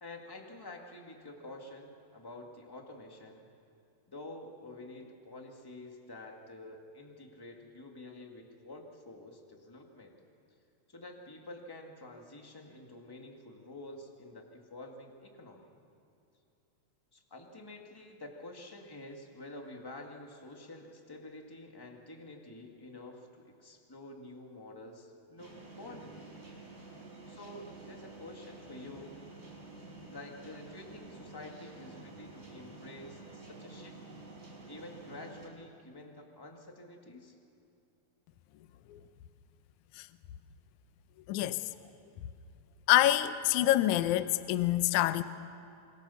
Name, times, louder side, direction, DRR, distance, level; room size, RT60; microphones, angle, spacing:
voice 1, 0.0-3.5 4.1-10.2 10.9-15.7 17.1-26.3 27.3-29.2 30.0-34.0 34.7-37.4, left 2 dB, 10° left, 2 dB, 1.1 m, -49 dB
sound 1, 25.4-35.5, right 3 dB, 20° right, 5.3 m, -50 dB
voice 2, 41.3-41.6 42.9-45.2, left 14 dB, 80° left, 12 dB, 1.8 m, -26 dB
27.0 x 24.0 x 7.1 m, 2.6 s
omnidirectional pair, 4.2 m